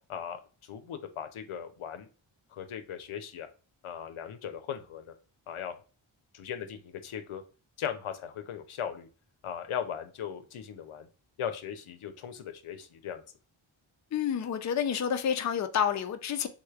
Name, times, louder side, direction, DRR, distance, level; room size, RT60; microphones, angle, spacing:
voice 1, 0.1-2.1 2.5-3.5 3.8-5.1 5.5-5.7 6.3-7.4 7.8-9.1 9.4-11.1 11.4-13.2, left 8 dB, 80° left, 0.6 m, -38 dB
voice 2, 14.1-16.5, left 8 dB, 35° left, 0.4 m, -29 dB
3.5 x 3.2 x 2.3 m
cardioid pair, 60°, 49 cm